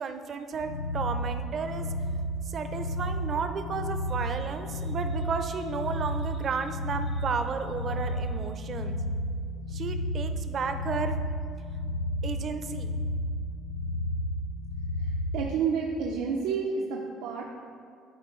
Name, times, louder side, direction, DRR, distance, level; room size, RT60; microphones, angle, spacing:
voice 1, 0.0-1.9 2.4-9.0 9.7-11.1 12.2-13.0, right 5 dB, 35° right, 7 dB, 0.5 m, -33 dB
sound 1, 0.5-15.5, equal, 80° left, 0.5 m, -32 dB
voice 2, 15.3-17.4, right 5 dB, 85° right, 0 dB, 0.5 m, -29 dB
11.0 x 4.4 x 3.1 m, 2.2 s
cardioid pair, 140°, 0 cm